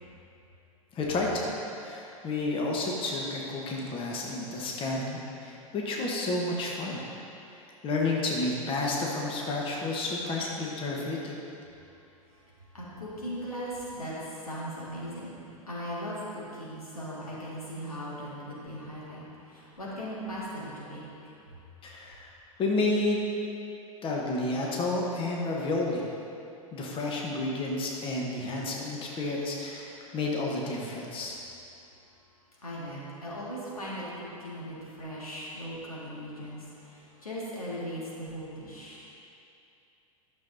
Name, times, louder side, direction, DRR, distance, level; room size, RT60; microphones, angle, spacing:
voice 1, 0.9-7.0 7.5-11.3 21.8-22.3 22.6-23.2 24.0-26.0 26.7-31.4, left 2 dB, 30° left, -2 dB, 1.2 m, -31 dB
voice 2, 12.7-14.1 14.4-19.2 19.5-21.0 32.6-39.1, equal, 85° left, -6 dB, 1.9 m, -38 dB
11.5 x 6.6 x 2.7 m, 2.6 s
figure-of-eight pair, 90°, 18 cm